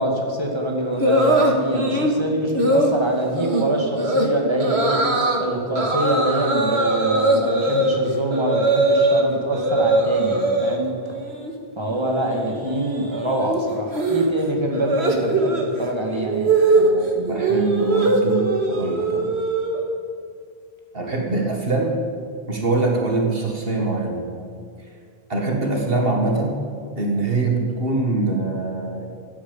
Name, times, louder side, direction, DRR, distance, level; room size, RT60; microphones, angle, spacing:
voice 1, 0.0-10.9 11.8-16.5, right 1 dB, 25° right, 1 dB, 2.4 m, -25 dB
sound 1, 1.0-2.2 2.6-2.9 3.4-3.6 4.0-4.3 4.6-5.4 5.8-9.2 9.5-10.8 11.1-11.5 11.8-20.0, right 2 dB, 80° right, 2.1 m, -21 dB
voice 2, 16.7-19.3 20.9-22.0 22.5-24.3 25.3-26.6 27.0-29.1, right 3 dB, 65° right, 1 dB, 2.1 m, -23 dB
15.0 x 10.0 x 8.9 m, 2.2 s
omnidirectional pair, 1.1 m